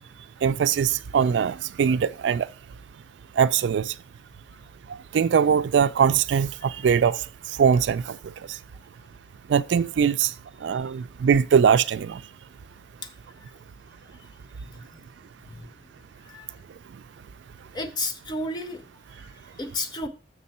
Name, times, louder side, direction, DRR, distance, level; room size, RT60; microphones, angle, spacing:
voice 1, 0.4-2.5 3.4-3.9 5.1-7.2 7.6-8.2 9.5-10.3 10.6-12.2, right 7 dB, 90° right, 0.3 m, -21 dB
voice 2, 17.7-18.8 19.2-20.1, left 2 dB, 25° left, 0.7 m, -32 dB
6.6 x 6.6 x 4.2 m
head